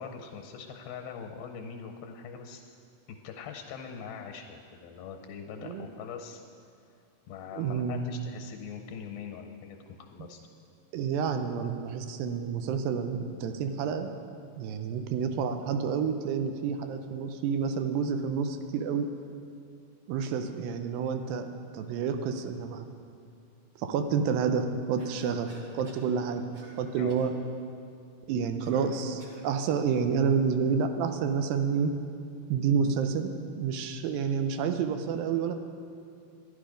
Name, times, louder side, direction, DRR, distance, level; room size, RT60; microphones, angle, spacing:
voice 1, 0.0-2.7 3.1-6.4 7.3-9.8 10.1-10.4 27.0-27.2, left 6 dB, 90° left, 4 dB, 2.6 m, -42 dB
voice 2, 7.5-8.1 10.2-10.3 10.9-14.2 14.6-19.1 20.1-22.9 23.8-26.5 26.8-27.3 28.3-31.9 32.5-35.6, right 6 dB, 85° right, 7 dB, 2.4 m, -29 dB
Cough, 25.0-26.1 26.5-26.8 27.1-27.4 28.6-29.5, right 2 dB, 60° right, 1.5 m, -52 dB
12.5 x 11.0 x 5.1 m, 2.4 s
omnidirectional pair, 4.2 m